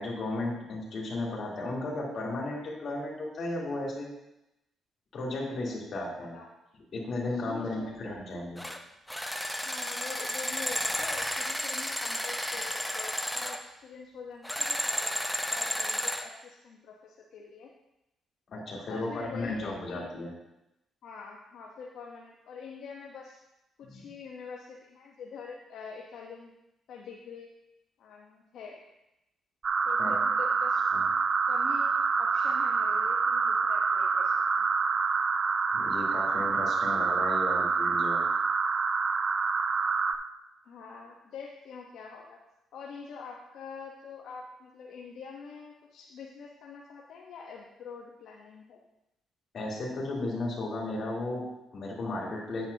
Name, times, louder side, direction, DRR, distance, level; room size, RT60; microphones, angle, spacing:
voice 1, 0.0-4.1 5.1-6.4 6.9-8.6 18.5-20.3 23.8-24.0 30.0-30.2 30.9-31.1 35.7-38.3 49.5-52.6, left 2 dB, 55° left, -4 dB, 3.4 m, -34 dB
voice 2, 7.3-8.1 9.6-15.2 15.5-17.7 18.7-20.1 21.0-23.4 23.8-26.5 26.9-27.5 28.0-28.8 29.8-31.0 31.5-34.3 40.6-42.4 42.7-48.8, left 5 dB, 75° left, -2 dB, 1.1 m, -45 dB
sound 1, 8.6-8.8 9.1-13.6 14.4-16.3, equal, 5° left, 0.8 m, -32 dB
sound 2, 29.6-40.1, right 5 dB, 45° right, 0.6 m, -27 dB
9.8 x 8.8 x 2.9 m, 0.90 s
cardioid pair, 90°, 0 cm